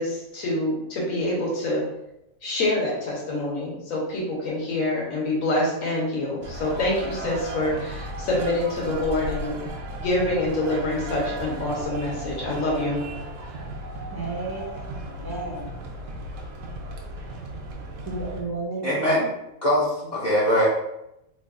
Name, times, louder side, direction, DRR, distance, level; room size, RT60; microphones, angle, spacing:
voice 1, 0.0-1.8 2.4-9.6 10.0-13.1, left 1 dB, 75° left, -3 dB, 1.4 m, -26 dB
sound 1, 6.4-18.4, right 1 dB, 70° right, 0.9 m, -35 dB
voice 2, 14.1-15.6 18.1-18.9, right 3 dB, 30° right, -5 dB, 0.4 m, -33 dB
voice 3, 18.8-19.3 19.6-20.7, equal, 45° left, -6 dB, 0.6 m, -22 dB
3.1 x 2.3 x 3.6 m, 0.86 s
omnidirectional pair, 1.4 m